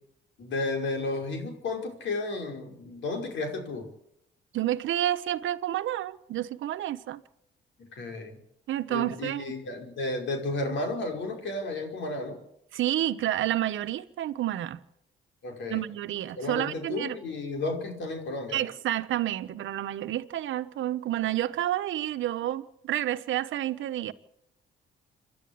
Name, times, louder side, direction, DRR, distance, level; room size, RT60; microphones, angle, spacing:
voice 1, 0.4-3.9 7.9-8.4 8.9-12.4 15.4-15.8 16.4-18.6, left 2 dB, 70° left, 5.3 m, -33 dB
voice 2, 4.5-7.2 8.7-9.4 12.7-14.8 15.7-17.2 18.5-24.1, right 13 dB, 75° right, 1.1 m, -29 dB
27.5 x 11.5 x 8.6 m
cardioid pair, 90°, 20 cm